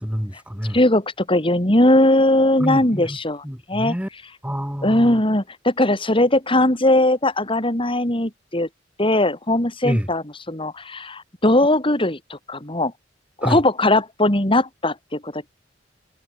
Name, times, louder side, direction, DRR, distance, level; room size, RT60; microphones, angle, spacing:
voice 1, 0.0-0.8 2.6-3.2 3.4-4.1 4.4-5.2 9.8-10.1 13.4-13.6, equal, 5° right, 4.8 m, -27 dB
voice 2, 0.7-3.4 3.7-3.9 4.8-8.7 9.0-12.9 13.4-15.5, left 1 dB, 30° left, 4.4 m, -19 dB
head